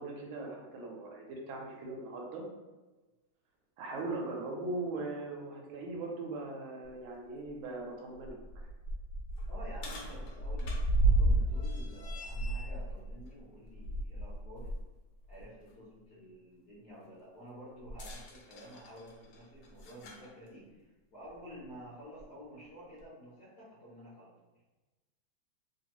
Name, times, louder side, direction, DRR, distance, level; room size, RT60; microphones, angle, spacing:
voice 1, 0.0-2.4 3.8-8.4, right 2 dB, 75° right, 0 dB, 1.4 m, -40 dB
sound 1, 6.8-6.9 7.4-7.5 8.1-14.8 15.2-15.4 17.8-20.3 21.3-21.4 22.2-22.3, right 1 dB, 75° left, 1.5 m, -33 dB
voice 2, 9.5-14.7 15.3-24.3, equal, 55° left, -10 dB, 1.2 m, -51 dB
3.3 x 2.7 x 2.9 m, 1.2 s
omnidirectional pair, 2.4 m